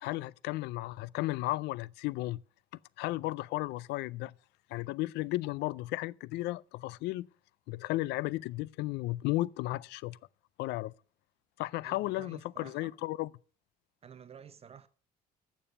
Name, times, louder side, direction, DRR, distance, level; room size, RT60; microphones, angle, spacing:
voice 1, 0.0-2.4 3.0-4.3 4.7-7.3 7.7-10.2 10.6-10.9 11.6-13.3, left 18 dB, 85° left, 0.4 m, -34 dB
voice 2, 11.8-12.9 14.0-14.9, right 7 dB, 35° right, 0.7 m, -51 dB
12.5 x 7.1 x 6.7 m
cardioid pair, 110°, 17 cm